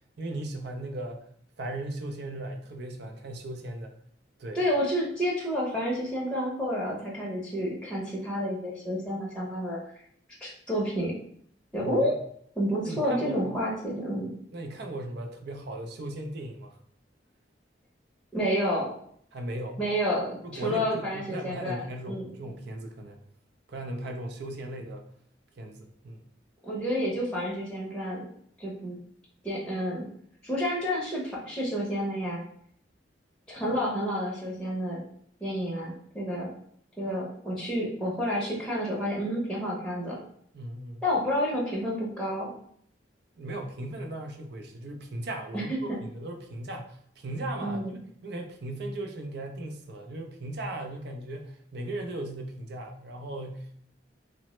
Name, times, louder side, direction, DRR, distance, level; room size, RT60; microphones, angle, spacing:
voice 1, 0.2-1.2 1.6-3.9 4.4-4.6 11.8-12.1 12.8-13.4 14.5-16.7 19.3-19.8 20.4-23.2 23.7-25.0 25.6-26.2 40.5-41.0 43.4-45.7 46.0-47.0 47.2-47.9 48.2-53.8, right 1 dB, 65° right, 4 dB, 0.5 m, -37 dB
voice 2, 4.5-9.8 10.4-11.1 11.7-12.2 12.6-14.3 18.3-18.9 19.8-22.3 26.6-28.3 28.6-29.0 29.4-30.0 30.4-32.4 33.5-35.0 35.4-36.5 37.0-40.2 41.0-42.5 45.5-45.6 45.9-46.0 47.6-48.0, equal, 5° left, -5 dB, 0.7 m, -30 dB
3.0 x 2.0 x 3.0 m, 0.65 s
head